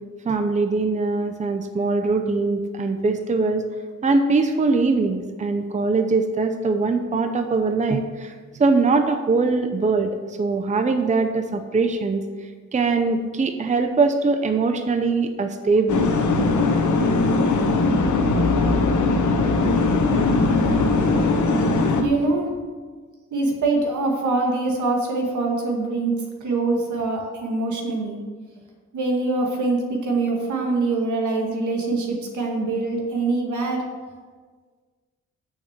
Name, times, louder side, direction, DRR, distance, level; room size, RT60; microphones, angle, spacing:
voice 1, 0.2-3.6 4.0-8.3 8.6-12.2 12.7-16.0, right 3 dB, 25° right, 6 dB, 0.6 m, -22 dB
sound 1, 15.9-22.0, left 3 dB, 80° left, 1.0 m, -20 dB
voice 2, 22.0-22.5 23.3-26.1 26.4-28.2 28.9-33.8, right 3 dB, 80° right, 1 dB, 2.0 m, -24 dB
6.5 x 6.3 x 7.4 m, 1.5 s
cardioid pair, 105°, 29 cm